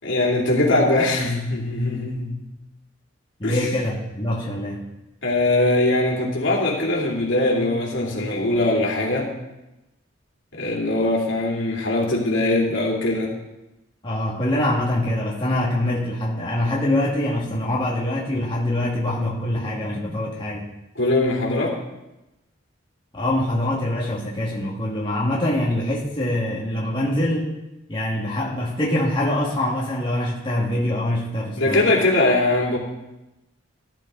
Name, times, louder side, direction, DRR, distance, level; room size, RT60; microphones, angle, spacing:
voice 1, 0.0-2.3 3.4-3.7 5.2-9.3 10.5-13.3 20.9-21.8 31.6-32.8, left 2 dB, 70° left, -2 dB, 3.1 m, -21 dB
voice 2, 3.4-4.9 14.0-20.6 23.1-27.5 27.9-31.9, left 1 dB, 25° left, -5 dB, 1.9 m, -24 dB
14.5 x 11.5 x 3.9 m, 0.96 s
head